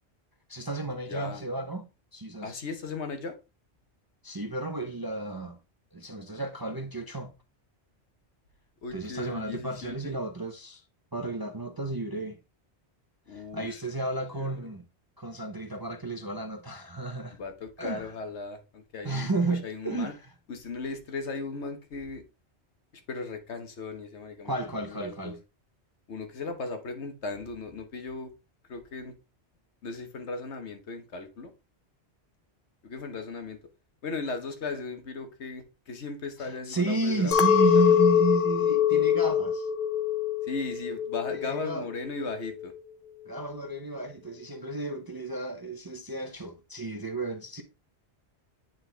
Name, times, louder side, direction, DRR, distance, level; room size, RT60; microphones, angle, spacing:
voice 1, 0.5-1.9 2.1-2.6 4.2-5.6 5.9-7.3 8.9-10.8 11.1-12.4 13.3-14.8 15.2-17.4 17.8-18.1 19.0-20.3 24.4-25.4 36.4-39.7 41.3-41.9 43.3-47.6, right 2 dB, 30° right, 0.4 m, -32 dB
voice 2, 1.1-1.4 2.4-3.4 8.8-10.2 13.3-13.7 14.3-14.5 17.4-20.1 20.5-22.2 23.1-25.4 26.1-28.3 28.7-29.1 29.8-31.5 32.8-33.6 34.0-37.9 40.4-42.7, left 4 dB, 75° left, 1.4 m, -37 dB
Chink clink, 37.3-41.7 42.0-42.7, left 9 dB, 55° left, 0.7 m, -24 dB
8.8 x 4.0 x 3.2 m
omnidirectional pair, 1.2 m